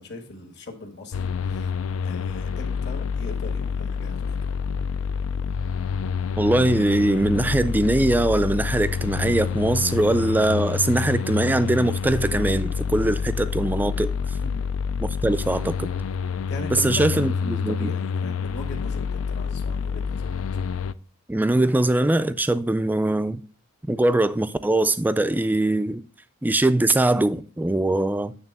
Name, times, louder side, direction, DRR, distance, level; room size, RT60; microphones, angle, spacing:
voice 1, 0.0-1.7 2.0-4.4 14.4-14.7 16.4-20.3, left 2 dB, 55° left, 1.6 m, -39 dB
sound 1, 1.1-20.9, left 6 dB, 80° left, 0.4 m, -28 dB
voice 2, 6.4-14.4 15.0-15.9 16.8-17.9 21.3-23.4 23.9-26.0 26.4-28.3, right 1 dB, 10° right, 0.3 m, -22 dB
8.9 x 3.4 x 5.9 m
head